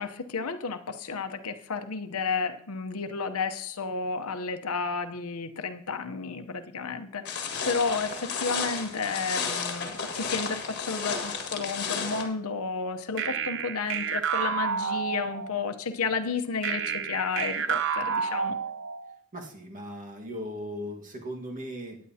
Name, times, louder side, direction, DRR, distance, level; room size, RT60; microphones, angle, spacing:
voice 1, 0.0-18.6, left 4 dB, 75° left, 8 dB, 0.8 m, -32 dB
sound 1, 7.3-12.2, left 5 dB, 50° left, 1.7 m, -32 dB
sound 2, 13.2-15.7 16.6-19.1, right 7 dB, 55° right, 0.8 m, -30 dB
voice 2, 19.3-22.0, equal, 35° right, 1 dB, 1.6 m, -38 dB
16.0 x 9.4 x 2.8 m, 0.63 s
head